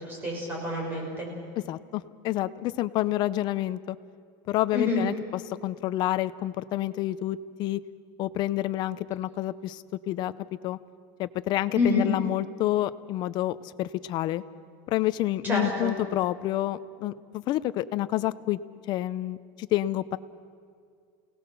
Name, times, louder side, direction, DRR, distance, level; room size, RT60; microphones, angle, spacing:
voice 1, 0.1-1.3 4.7-5.1 11.7-12.1 15.4-15.9, left 2 dB, 20° right, -1 dB, 6.6 m, -27 dB
voice 2, 1.7-4.0 4.5-7.8 8.2-10.3 10.6-10.8 11.2-14.4 14.9-18.6 18.9-20.2, left 14 dB, 40° left, 15 dB, 0.7 m, -28 dB
29.5 x 18.5 x 6.9 m, 2.3 s
supercardioid pair, 155°, 11 cm